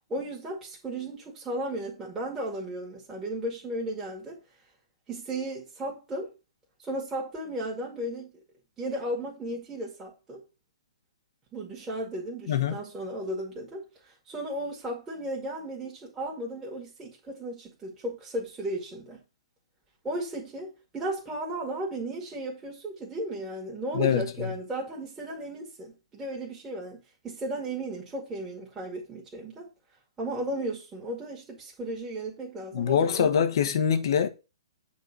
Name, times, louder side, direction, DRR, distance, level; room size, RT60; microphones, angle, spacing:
voice 1, 0.1-4.4 5.1-6.3 6.8-8.3 8.8-10.4 11.5-19.2 20.0-29.7 30.2-33.3, right 1 dB, 15° right, 2.1 m, -35 dB
voice 2, 12.5-12.8 23.9-24.5 32.7-34.3, left 8 dB, 55° left, 1.2 m, -24 dB
8.5 x 3.8 x 5.5 m
figure-of-eight pair, 120°, 3 cm